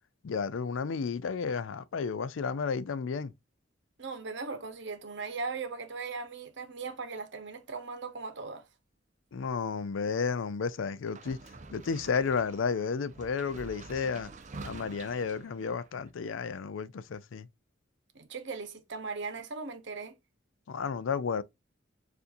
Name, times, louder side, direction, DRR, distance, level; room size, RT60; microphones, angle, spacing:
voice 1, 0.2-3.3 9.3-11.4 11.7-14.3 14.6-17.5 20.7-21.4, left 5 dB, 75° left, 0.4 m, -32 dB
voice 2, 4.0-8.7 18.1-20.2, right 4 dB, 65° right, 0.9 m, -38 dB
sound 1, 11.1-16.1, right 3 dB, 40° right, 0.6 m, -47 dB
6.9 x 2.6 x 2.6 m
head